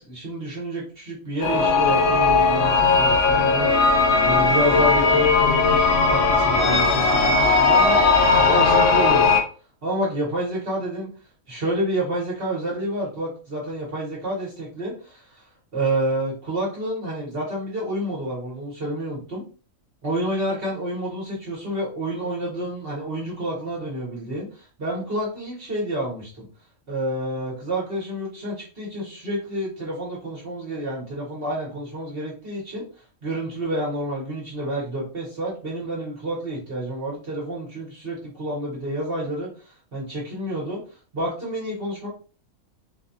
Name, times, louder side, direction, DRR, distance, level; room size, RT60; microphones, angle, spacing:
voice 1, 0.0-9.4 9.8-11.1 11.5-19.4 20.0-26.5 26.9-32.8 33.2-40.8 41.1-42.1, right 1 dB, 45° right, -5 dB, 1.2 m, -29 dB
sound 1, 1.4-9.4, left 4 dB, 60° left, 0.8 m, -18 dB
4.1 x 2.3 x 2.7 m, 0.38 s
omnidirectional pair, 1.4 m